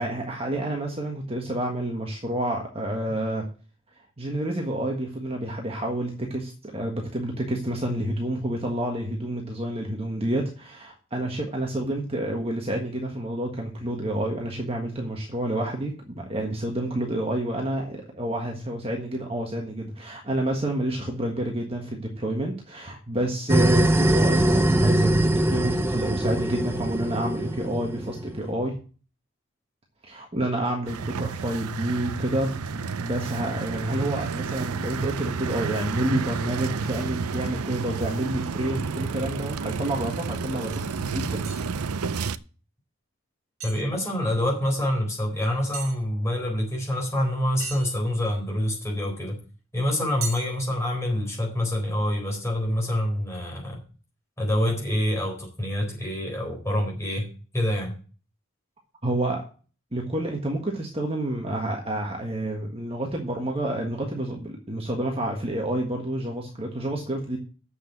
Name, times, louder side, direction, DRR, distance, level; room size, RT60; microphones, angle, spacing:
voice 1, 0.0-3.4 4.2-28.8 30.0-41.4 59.0-59.4 59.9-67.4, right 1 dB, 25° right, 1 dB, 1.5 m, -29 dB
sound 1, 23.5-28.4, right 1 dB, 10° right, 0.6 m, -22 dB
sound 2, 30.9-42.4, right 5 dB, 90° right, 0.6 m, -31 dB
sound 3, 39.9-40.0 40.7-40.8 41.4-41.7 43.6-43.9 45.7-46.0 47.6-48.4 50.2-50.7, right 6 dB, 70° right, 1.9 m, -37 dB
voice 2, 43.6-49.4 49.7-53.8 54.4-57.3 57.5-57.9, left 1 dB, 15° left, -1 dB, 4.0 m, -26 dB
8.0 x 6.7 x 7.8 m, 0.37 s
head